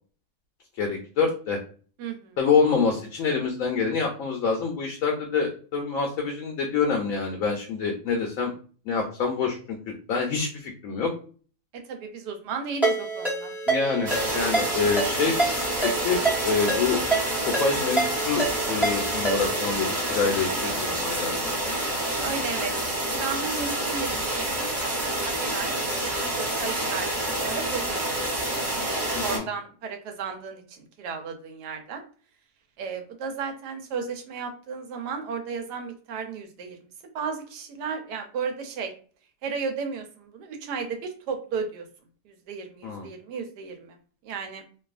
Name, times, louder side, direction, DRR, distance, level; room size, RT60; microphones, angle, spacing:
voice 1, 0.8-1.6 2.4-8.5 8.9-11.1 13.7-15.3 15.8-17.0 17.3-21.7 29.2-29.4 42.8-43.1, left 5 dB, 70° left, 2 dB, 0.8 m, -26 dB
voice 2, 2.0-2.4 11.9-13.5 22.0-22.7 23.1-28.0 28.5-32.0 32.8-38.9 39.4-41.8 42.2-44.0 44.2-44.7, right 5 dB, 85° right, 5 dB, 1.2 m, -34 dB
Ringtone, 12.8-19.7, right 2 dB, ahead, 0.3 m, -28 dB
sound 1, 14.1-29.4, right 1 dB, 30° right, 0.8 m, -28 dB
2.6 x 2.3 x 2.3 m, 0.41 s
omnidirectional pair, 1.7 m